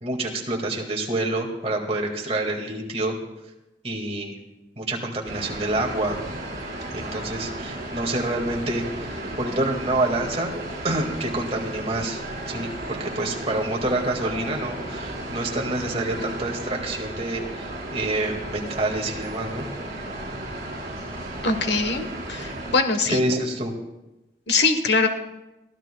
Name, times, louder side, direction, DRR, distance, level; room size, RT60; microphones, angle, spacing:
voice 1, 0.0-3.2 3.8-4.4 4.8-6.2 6.9-9.1 9.4-10.5 10.8-12.2 12.5-19.7 23.1-23.7, right 2 dB, 35° right, 0 dB, 1.9 m, -27 dB
sound 1, 5.2-22.8, right 1 dB, 55° right, 4.7 m, -34 dB
voice 2, 21.4-23.2 24.5-25.1, left 3 dB, 65° left, 7 dB, 1.1 m, -22 dB
23.0 x 14.0 x 2.3 m, 1.0 s
head